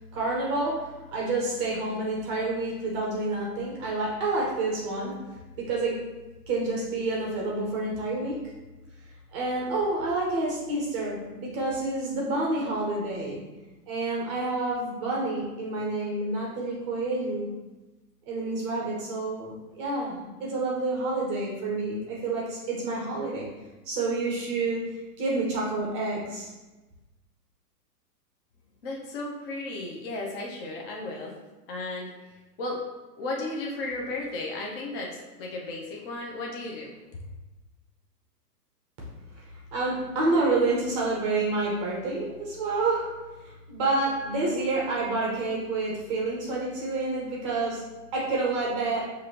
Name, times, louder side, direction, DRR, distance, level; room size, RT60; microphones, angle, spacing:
voice 1, 0.0-5.1 5.6-6.0 6.5-8.4 9.3-13.4 13.9-17.5 18.3-23.5 23.9-26.5 39.7-43.1 43.4-47.8 48.1-49.0, right 2 dB, 20° right, -3 dB, 0.5 m, -28 dB
voice 2, 28.8-31.4 31.7-32.1 32.6-32.8 33.2-37.0, left 2 dB, 35° left, -2 dB, 0.6 m, -34 dB
6.0 x 2.6 x 2.8 m, 1.1 s
hypercardioid pair, 145°, 48 cm